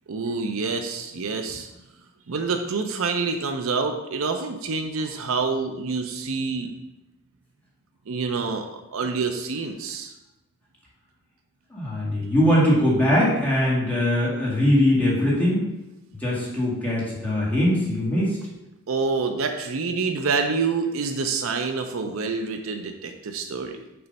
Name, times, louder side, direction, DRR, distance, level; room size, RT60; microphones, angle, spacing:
voice 1, 0.1-1.7 2.3-6.7 8.1-8.7 8.9-10.1 18.9-23.8, right 4 dB, 65° right, 6 dB, 0.5 m, -27 dB
voice 2, 11.7-15.7 16.2-18.4, left 1 dB, 5° left, -7 dB, 1.9 m, -21 dB
6.9 x 3.3 x 5.2 m, 0.95 s
head